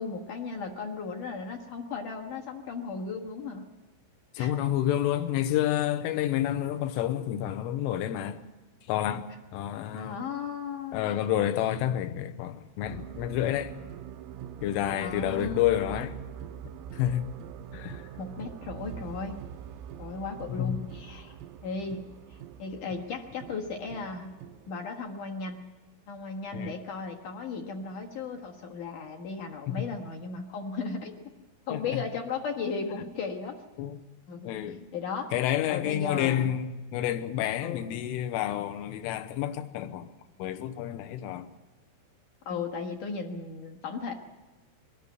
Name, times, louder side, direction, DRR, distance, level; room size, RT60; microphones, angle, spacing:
voice 1, 0.0-3.6 4.4-4.5 9.9-11.1 15.0-15.8 18.2-19.4 20.0-22.0 22.3-24.3 24.7-25.6 26.1-31.2 31.7-33.6 34.3-34.5 34.9-35.3 35.7-36.5 37.6-37.8 42.5-44.1, left 4 dB, 65° left, 2.0 m, -36 dB
voice 2, 4.4-8.4 8.9-10.2 10.9-13.8 14.6-16.2 16.9-17.3 17.7-18.1 20.5-20.8 26.5-26.7 29.7-29.8 31.7-32.0 32.8-32.9 33.8-34.0 34.5-34.9 35.3-40.1 40.4-41.5, left 12 dB, 80° left, 3.4 m, -29 dB
sound 1, 12.8-24.7, right 9 dB, 90° right, 3.6 m, -44 dB
22.5 x 14.0 x 9.5 m
omnidirectional pair, 5.9 m